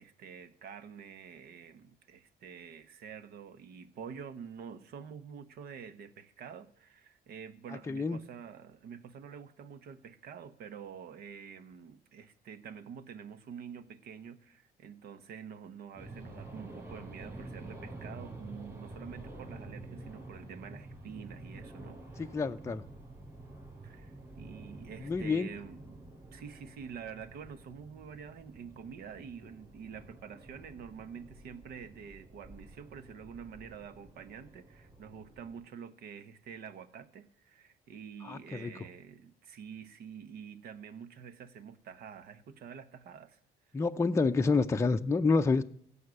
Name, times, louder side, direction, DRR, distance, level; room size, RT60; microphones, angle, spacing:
voice 1, 0.0-22.3 23.8-26.0 26.3-43.4, right 7 dB, 65° right, 1.2 m, -47 dB
voice 2, 7.9-8.2 22.2-22.8 25.0-25.5 38.2-38.7 43.7-45.6, left 4 dB, 15° left, 0.5 m, -28 dB
sound 1, 16.0-35.6, right 2 dB, 15° right, 5.5 m, -49 dB
16.0 x 5.6 x 9.8 m
cardioid pair, 110°, 17 cm